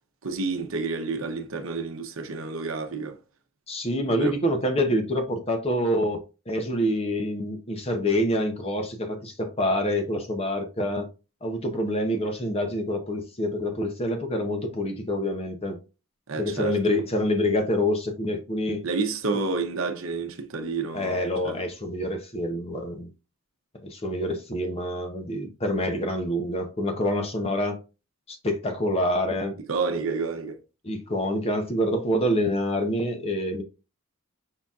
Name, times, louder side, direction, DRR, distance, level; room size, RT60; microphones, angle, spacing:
voice 1, 0.2-3.2 4.2-4.3 16.3-16.8 18.8-21.6 29.7-30.6, right 4 dB, 65° right, 0.8 m, -29 dB
voice 2, 3.7-11.1 11.4-15.8 16.4-18.8 20.9-23.1 23.8-27.8 28.3-29.6 30.8-33.6, left 1 dB, 25° left, 0.7 m, -26 dB
5.6 x 3.9 x 2.4 m
head